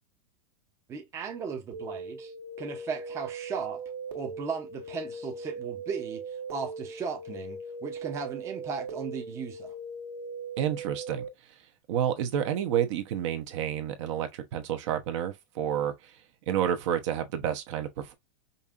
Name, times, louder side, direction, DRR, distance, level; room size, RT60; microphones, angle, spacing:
voice 1, 0.9-2.3 2.6-3.8 4.1-9.7, right 5 dB, 15° right, 0.7 m, -36 dB
sound 1, 1.7-11.3, right 3 dB, 85° right, 1.4 m, -39 dB
voice 2, 10.6-11.3 11.9-16.1 16.5-18.1, right 9 dB, 50° right, 0.9 m, -29 dB
5.3 x 2.6 x 2.5 m
supercardioid pair, 165°, 20 cm